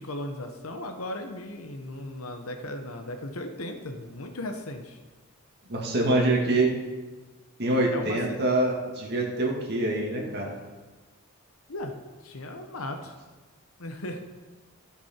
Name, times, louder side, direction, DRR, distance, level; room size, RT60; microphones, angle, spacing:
voice 1, 0.0-5.0 7.9-8.4 11.7-11.9 12.2-13.2 13.8-14.2, left 1 dB, 75° left, 5 dB, 1.0 m, -36 dB
voice 2, 5.7-6.8 7.6-10.6, right 2 dB, 50° right, -1 dB, 2.0 m, -25 dB
15.0 x 6.0 x 4.4 m, 1.3 s
head